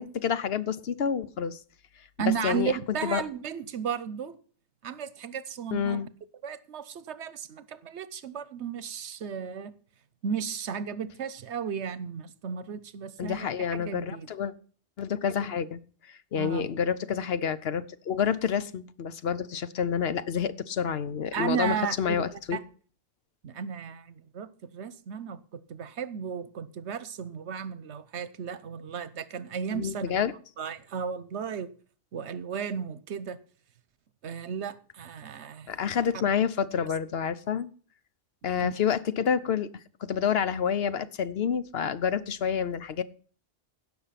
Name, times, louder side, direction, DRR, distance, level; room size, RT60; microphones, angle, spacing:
voice 1, 0.0-1.6 2.2-2.8 3.0-3.2 5.7-6.1 13.2-14.5 15.0-15.8 16.1-22.6 29.7-30.3 35.7-37.7 38.4-39.7 40.0-43.0, left 7 dB, 65° left, 1.0 m, -28 dB
voice 2, 2.2-4.4 4.8-6.0 6.4-9.7 10.2-14.3 16.3-16.7 21.3-22.6 23.4-30.3 30.6-31.7 32.1-33.4 34.2-35.8 38.6-38.7, right 7 dB, 80° right, 1.1 m, -34 dB
16.5 x 6.2 x 5.8 m
omnidirectional pair, 1.2 m